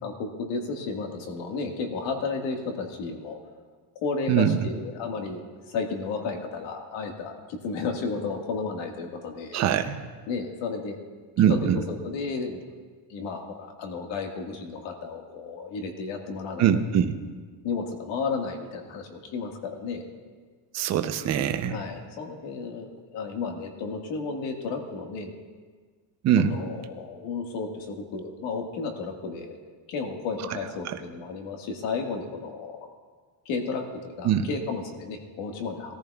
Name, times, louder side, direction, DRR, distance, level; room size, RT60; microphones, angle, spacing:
voice 1, 0.0-3.4 4.0-9.6 10.3-11.0 11.4-12.6 13.1-16.7 17.6-20.1 21.7-25.3 26.4-29.6 29.9-32.9 33.5-36.0, left 4 dB, 75° left, 3 dB, 1.8 m, -33 dB
voice 2, 9.5-10.0 11.4-11.8 16.6-17.2 20.7-21.7 26.2-26.6 34.2-34.5, right 9 dB, 40° right, 9 dB, 0.6 m, -22 dB
20.0 x 14.0 x 2.3 m, 1.5 s
cardioid pair, 175°, 44 cm